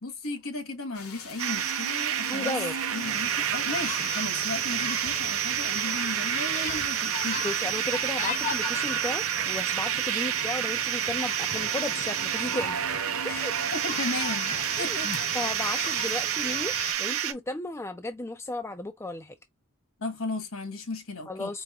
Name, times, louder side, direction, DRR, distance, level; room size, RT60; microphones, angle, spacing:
voice 1, 0.0-2.6 2.9-7.4 13.7-15.1 20.0-21.5, left 2 dB, 65° left, 1.3 m, -35 dB
sound 1, 0.9-16.3, left 5 dB, 80° left, 1.4 m, -45 dB
sound 2, 1.4-17.3, right 10 dB, 65° right, 0.6 m, -29 dB
voice 2, 2.3-2.8 7.4-12.8 13.2-13.5 14.8-15.0 15.3-19.4 21.3-21.6, left 2 dB, 10° left, 0.3 m, -34 dB
sound 3, 3.0-16.9, left 4 dB, 35° left, 0.7 m, -39 dB
4.7 x 2.7 x 2.3 m
head